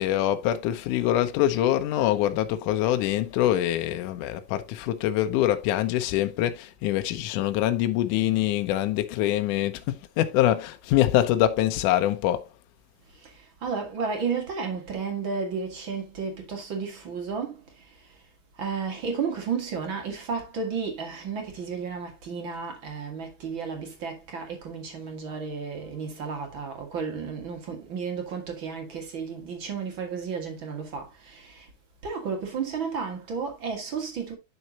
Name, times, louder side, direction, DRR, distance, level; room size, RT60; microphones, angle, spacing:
voice 1, 0.0-12.5, left 13 dB, 75° left, 2.0 m, -24 dB
voice 2, 13.6-17.6 18.6-31.7 32.0-34.3, right 5 dB, 45° right, 1.9 m, -32 dB
9.4 x 6.2 x 2.8 m
omnidirectional pair, 4.3 m